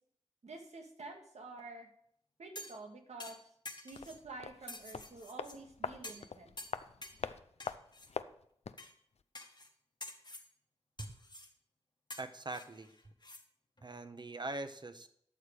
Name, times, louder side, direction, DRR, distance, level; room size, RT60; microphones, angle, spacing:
voice 1, 0.4-1.9 2.4-3.4 3.8-6.6, right 2 dB, 90° right, 3 dB, 1.7 m, -49 dB
sound 1, 2.5-2.8 3.2-4.2 4.7-5.6 6.0-6.3 6.6-7.2 7.6-8.1 8.8-8.9 9.3-9.7 10.0-10.5 11.0-11.5 12.1-13.4 13.8-13.9, left 1 dB, 40° left, 1.5 m, -49 dB
sound 2, 3.9-8.9 9.2-9.3, left 5 dB, 70° left, 0.5 m, -44 dB
voice 2, 12.2-13.1 13.8-15.1, right 2 dB, 40° right, 10 dB, 1.1 m, -42 dB
12.0 x 6.7 x 5.0 m, 0.68 s
cardioid pair, 50°, 11 cm